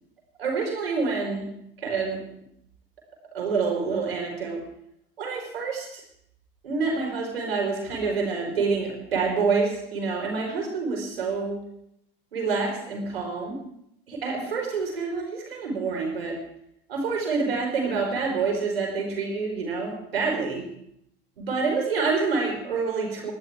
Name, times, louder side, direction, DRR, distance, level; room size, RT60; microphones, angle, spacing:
voice 1, 0.4-1.5 1.8-2.2 3.3-4.6 5.2-6.0 6.6-11.6 12.3-13.6 14.1-16.3 16.9-20.6 21.4-23.3, right 4 dB, 85° right, 0 dB, 4.6 m, -27 dB
21.0 x 12.5 x 3.5 m, 0.75 s
hypercardioid pair, 75°, 29 cm